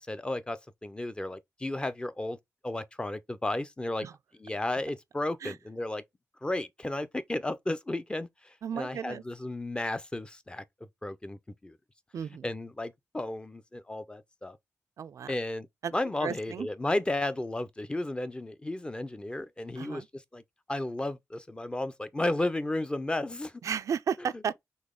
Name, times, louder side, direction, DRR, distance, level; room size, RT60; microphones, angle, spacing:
voice 1, 0.1-2.4 2.6-4.1 4.4-6.0 6.4-10.6 11.0-11.8 12.4-14.6 15.3-15.7 15.9-20.4 20.7-23.6 24.3-24.4, left 1 dB, 15° left, 0.5 m, -33 dB
voice 2, 8.6-9.2 12.1-12.5 15.0-15.3 15.8-15.9 16.2-16.7 19.8-20.1 23.6-24.6, right 7 dB, 70° right, 0.4 m, -33 dB
4.0 x 3.1 x 3.6 m
cardioid pair, 90°, 6 cm